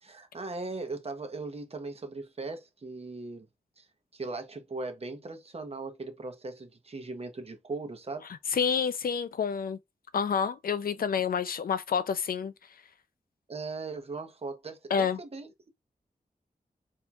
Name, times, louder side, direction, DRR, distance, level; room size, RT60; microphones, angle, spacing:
voice 1, 0.0-3.5 3.8-3.9 4.1-8.3 13.5-15.7, right 3 dB, 40° right, 0.9 m, -39 dB
voice 2, 8.5-9.8 10.1-12.5 14.9-15.2, left 6 dB, 70° left, 0.5 m, -28 dB
4.4 x 2.7 x 2.3 m
wide cardioid pair, 95°, 15 cm